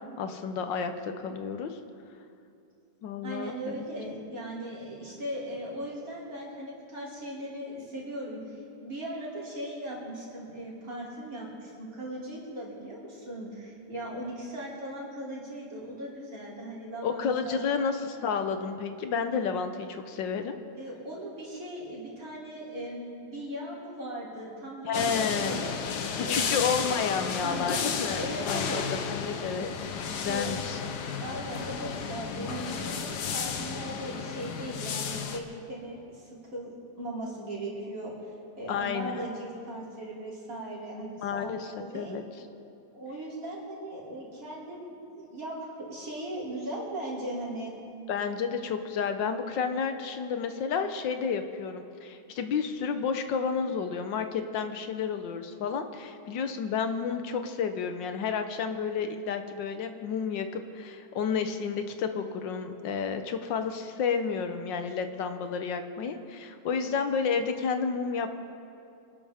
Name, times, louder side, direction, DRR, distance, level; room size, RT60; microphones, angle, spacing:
voice 1, 0.0-1.8 3.0-3.9 17.0-20.6 24.8-25.6 26.2-29.7 30.1-30.8 38.7-39.3 41.2-42.2 48.1-68.4, left 6 dB, 90° left, 8 dB, 1.6 m, -31 dB
voice 2, 3.2-17.6 20.8-25.8 26.2-26.5 27.4-27.9 28.2-28.9 30.3-30.5 31.2-38.1 38.6-42.2 42.9-47.7, right 1 dB, 50° right, -6 dB, 3.5 m, -38 dB
sound 1, 24.9-35.4, left 6 dB, 70° left, 1.5 m, -33 dB
25.5 x 12.0 x 3.5 m, 2.6 s
omnidirectional pair, 1.9 m